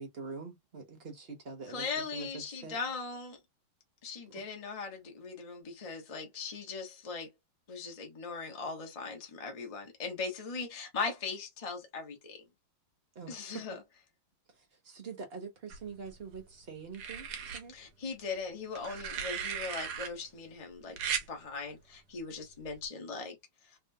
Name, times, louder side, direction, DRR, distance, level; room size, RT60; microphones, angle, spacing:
voice 1, 0.0-2.8 4.3-4.4 13.1-13.6 14.6-17.3 17.5-17.7, right 5 dB, 45° right, 0.8 m, -45 dB
voice 2, 1.7-3.4 4.0-7.3 7.7-12.4 13.3-13.8 17.7-21.0 21.3-23.3, left 4 dB, 25° left, 0.7 m, -39 dB
sound 1, 15.7-16.4 16.9-17.6 18.8-20.1 21.0-21.3 22.6-22.9, right 7 dB, 65° right, 1.0 m, -37 dB
3.4 x 2.9 x 2.7 m
omnidirectional pair, 2.3 m